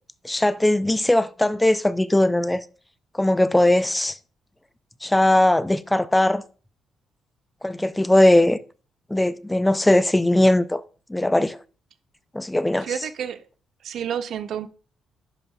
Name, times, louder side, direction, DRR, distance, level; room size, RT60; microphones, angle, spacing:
voice 1, 0.2-2.6 3.1-4.1 5.0-6.4 7.6-8.6 9.1-10.8 11.1-11.6 12.3-12.9, left 1 dB, 10° left, 0.4 m, -19 dB
voice 2, 12.8-13.4 13.8-14.7, right 9 dB, 70° right, 0.5 m, -29 dB
10.5 x 5.4 x 2.3 m
cardioid pair, 90°, 0 cm